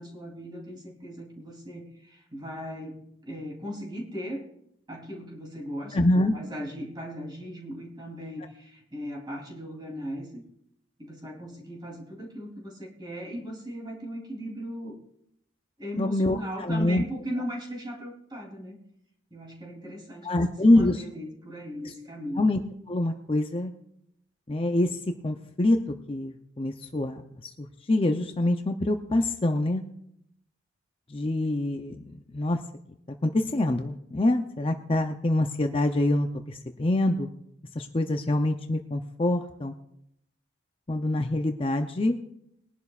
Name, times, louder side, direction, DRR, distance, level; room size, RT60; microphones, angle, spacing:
voice 1, 0.0-4.5 4.9-10.4 11.0-15.0 15.8-18.8 19.3-22.4, equal, 25° right, -1 dB, 3.2 m, -38 dB
voice 2, 5.9-6.3 16.0-17.0 20.2-21.0 22.4-22.6 22.9-23.7 24.5-25.0 25.2-25.8 26.1-29.8 31.1-32.6 33.2-37.3 37.8-39.7 40.9-42.2, left 1 dB, 30° left, 5 dB, 0.6 m, -25 dB
21.5 x 11.0 x 2.4 m, 0.76 s
head